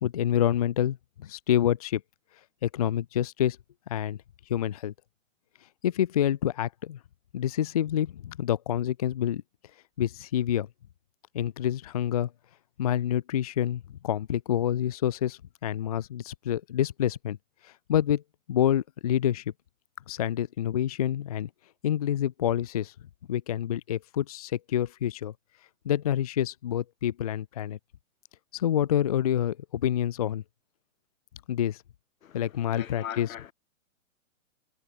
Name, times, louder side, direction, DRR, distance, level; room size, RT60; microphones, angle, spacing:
voice 1, 0.0-2.0 2.6-3.6 3.9-4.2 4.5-4.9 5.8-7.0 7.3-9.4 10.0-10.7 11.3-12.3 12.8-17.4 17.6-18.2 18.5-19.4 20.1-21.5 21.8-22.9 23.3-25.3 25.9-27.8 28.5-30.4 31.5-31.8 32.3-33.3, left 10 dB, 30° left, 0.5 m, -27 dB
voice 2, 32.2-33.5, left 9 dB, 85° left, 2.3 m, -41 dB
hypercardioid pair, 170°, 40 cm